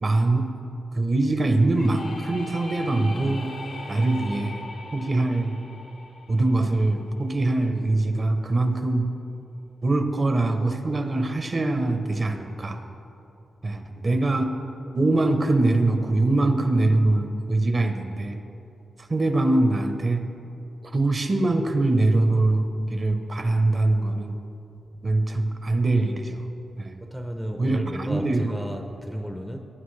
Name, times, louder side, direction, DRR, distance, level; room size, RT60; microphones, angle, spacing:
voice 1, 0.0-0.4 0.9-3.5 3.9-5.6 6.3-9.1 9.8-12.8 13.6-14.5 14.9-18.4 19.1-20.2 20.8-24.4 25.0-26.4 26.8-27.0 27.6-28.5, right 2 dB, 35° right, 7 dB, 0.8 m, -23 dB
sound 1, 1.8-7.4, left 2 dB, 65° left, 1.1 m, -40 dB
voice 2, 13.9-14.3 27.0-29.6, equal, 5° right, 4 dB, 0.6 m, -33 dB
18.5 x 9.1 x 3.3 m, 2.8 s
wide cardioid pair, 110°, 0 cm